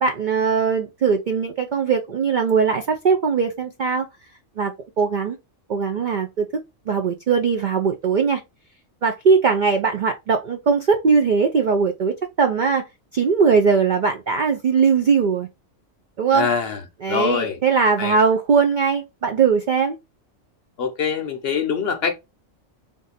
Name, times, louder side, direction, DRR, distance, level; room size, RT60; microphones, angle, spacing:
voice 1, 0.0-4.1 4.6-5.4 5.7-6.5 6.9-8.4 9.0-12.8 13.1-15.5 16.2-16.5 17.0-20.0, right 5 dB, 70° right, 0.4 m, -20 dB
voice 2, 16.3-16.8 17.1-17.6 18.0-18.2 20.8-22.1, left 6 dB, 60° left, 0.7 m, -24 dB
3.7 x 2.6 x 4.1 m
omnidirectional pair, 1.4 m